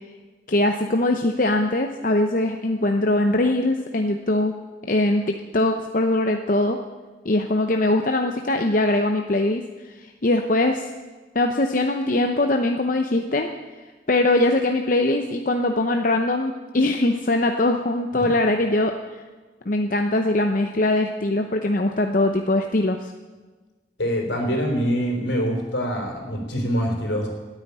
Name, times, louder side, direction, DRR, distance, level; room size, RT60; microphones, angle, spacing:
voice 1, 0.5-4.5 4.8-6.8 7.2-10.9 11.3-13.5 14.1-18.9 19.7-23.1, left 2 dB, 45° left, 4 dB, 0.7 m, -22 dB
voice 2, 24.0-27.3, equal, 75° left, 1 dB, 3.9 m, -24 dB
13.5 x 9.1 x 9.9 m, 1.3 s
head